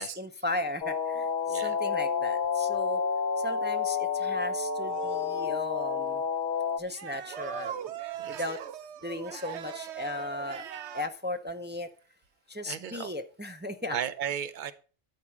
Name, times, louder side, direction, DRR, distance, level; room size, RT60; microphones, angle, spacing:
voice 1, 0.0-3.0 3.4-6.2 6.8-7.8 8.3-8.6 9.0-10.6 10.9-11.9 12.5-14.0, left 2 dB, 10° right, 6 dB, 0.5 m, -36 dB
sound 1, 0.8-6.8, left 6 dB, 45° left, 1.0 m, -29 dB
sound 2, 4.8-5.6 6.9-11.1, right 9 dB, 75° right, 1.0 m, -40 dB
voice 2, 12.7-13.1 13.9-14.7, right 9 dB, 50° right, 13 dB, 0.8 m, -34 dB
12.0 x 4.4 x 6.1 m, 0.38 s
omnidirectional pair, 1.2 m